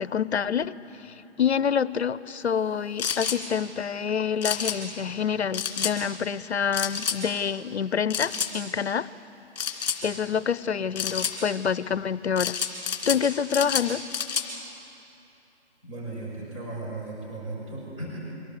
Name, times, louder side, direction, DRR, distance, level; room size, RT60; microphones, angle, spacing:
voice 1, 0.0-9.1 10.0-12.6 13.1-14.0, left 7 dB, 70° left, 17 dB, 0.7 m, -27 dB
sound 1, 3.0-3.4 4.4-4.8 5.5-5.9 6.7-7.2 8.1-8.5 9.5-10.0 10.9-11.3 12.4-13.2 13.5-14.5, left 7 dB, 40° left, 2.7 m, -29 dB
voice 2, 15.8-18.2, right 2 dB, 30° right, -5 dB, 5.7 m, -36 dB
24.0 x 17.5 x 8.3 m, 2.9 s
figure-of-eight pair, 145°, 34 cm